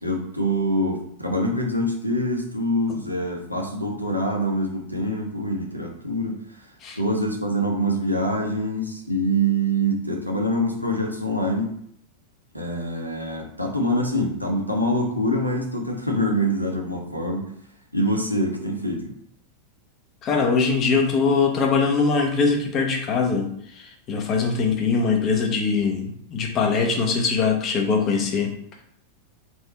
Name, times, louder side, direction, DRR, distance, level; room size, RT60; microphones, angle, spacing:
voice 1, 0.0-6.4 7.0-11.7 12.5-17.5 17.9-19.1, equal, 90° right, -1 dB, 0.8 m, -25 dB
voice 2, 20.2-23.5 23.8-28.6, left 4 dB, 30° left, 2 dB, 0.8 m, -22 dB
3.4 x 2.7 x 4.2 m, 0.67 s
figure-of-eight pair, 90°, 0 cm